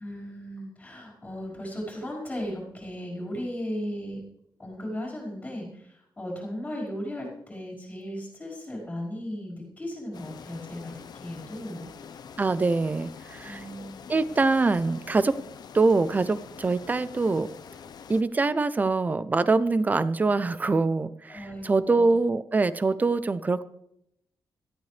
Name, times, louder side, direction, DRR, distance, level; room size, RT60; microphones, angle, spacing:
voice 1, 0.0-4.2 4.6-11.9 13.4-14.2 21.3-22.1, equal, 15° left, -4 dB, 5.0 m, -36 dB
sound 1, 10.1-18.2, left 7 dB, 60° left, 0.8 m, -45 dB
voice 2, 12.4-13.6 14.1-15.4 15.7-17.5 18.1-23.6, right 3 dB, 20° right, 15 dB, 0.6 m, -24 dB
17.5 x 13.5 x 3.4 m, 0.76 s
wide cardioid pair, 180°, 8 cm